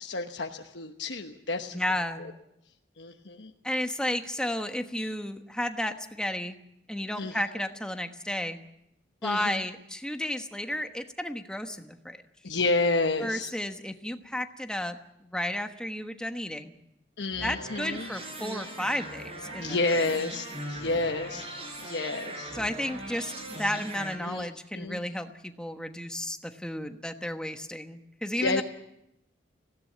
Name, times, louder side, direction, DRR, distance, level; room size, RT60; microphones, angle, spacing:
voice 1, 0.0-1.8 2.2-2.3 3.0-3.5 7.2-7.4 9.2-9.6 12.4-13.5 17.2-18.1 19.6-21.5 21.8-22.6 24.2-24.5 24.7-25.0 28.4-28.6, left 3 dB, 85° left, 3 dB, 1.1 m, -30 dB
voice 2, 1.7-2.2 3.6-6.6 6.9-8.6 9.2-12.2 13.2-15.0 15.3-16.7 17.4-20.0 22.5-23.3 23.6-28.6, left 1 dB, 5° left, 6 dB, 1.2 m, -32 dB
sound 1, 17.3-24.1, right 1 dB, 35° right, 4.5 m, -40 dB
19.5 x 17.0 x 8.6 m, 0.83 s
head